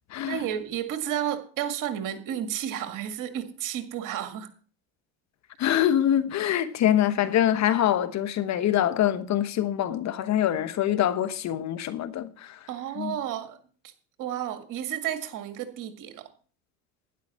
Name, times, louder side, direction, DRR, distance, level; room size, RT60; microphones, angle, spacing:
voice 1, 0.2-4.5 12.7-13.6 13.8-13.9 14.2-16.3, right 10 dB, 55° right, 2.0 m, -32 dB
voice 2, 5.6-12.6 13.0-13.1, left 11 dB, 45° left, 1.1 m, -24 dB
12.0 x 10.5 x 4.3 m
hypercardioid pair, 80°, 37 cm